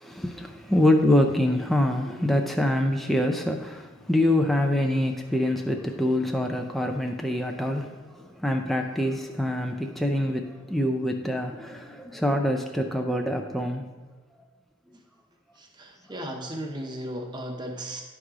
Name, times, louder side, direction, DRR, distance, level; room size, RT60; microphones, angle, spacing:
voice 1, 0.0-8.0 8.4-13.9, left 1 dB, ahead, 2 dB, 0.4 m, -25 dB
voice 2, 15.6-18.0, right 1 dB, 20° right, 2 dB, 0.9 m, -35 dB
11.0 x 4.8 x 3.7 m, 1.4 s
head